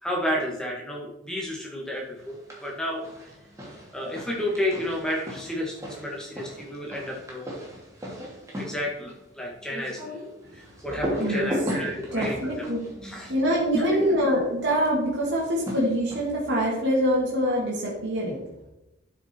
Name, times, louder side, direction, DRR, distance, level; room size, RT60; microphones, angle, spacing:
voice 1, 0.0-3.0 3.9-7.4 8.6-10.0 10.5-12.4 13.0-13.3 13.7-14.1, left 1 dB, 5° left, -2 dB, 2.0 m, -31 dB
sound 1, 2.2-2.7 3.0-14.0 15.3-16.5, equal, 15° right, 2.6 m, -36 dB
voice 2, 11.2-12.9 13.3-18.4, equal, 60° right, -5 dB, 2.3 m, -25 dB
11.5 x 5.8 x 4.6 m, 0.92 s
head